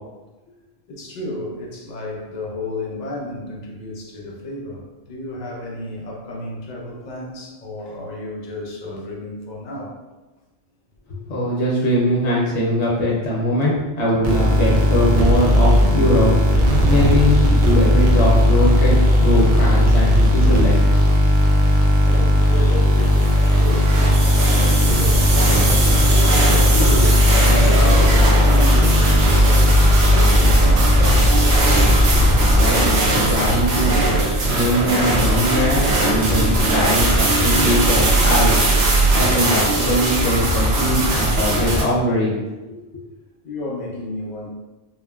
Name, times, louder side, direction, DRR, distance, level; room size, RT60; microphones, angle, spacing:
voice 1, 0.9-10.0 22.0-26.1 26.7-31.3 43.4-44.5, left 1 dB, 55° left, -2 dB, 0.5 m, -31 dB
voice 2, 11.3-20.9 32.2-34.0 34.5-38.5 39.1-42.4 42.6-43.0, left 1 dB, 70° left, -5 dB, 1.0 m, -21 dB
sound 1, 14.2-33.0, equal, 60° right, 0.6 m, -16 dB
sound 2, 23.1-41.8, right 1 dB, 80° right, 0.9 m, -19 dB
3.0 x 2.1 x 2.2 m, 1.1 s
omnidirectional pair, 1.2 m